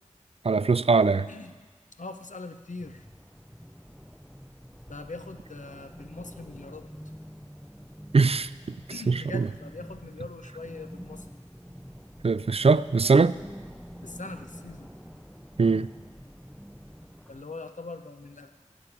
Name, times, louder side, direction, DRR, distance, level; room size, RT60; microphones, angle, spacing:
voice 1, 0.4-1.3 8.1-8.5 9.1-9.5 12.2-13.3 15.6-15.9, right 4 dB, 50° right, 16 dB, 0.4 m, -21 dB
voice 2, 1.9-3.1 4.9-6.9 8.9-11.3 14.0-14.9 17.3-18.5, left 3 dB, 75° left, 8 dB, 0.8 m, -41 dB
sound 1, 2.8-17.5, equal, ahead, 0.6 m, -46 dB
17.0 x 8.2 x 6.1 m, 1.4 s
wide cardioid pair, 50°, 13 cm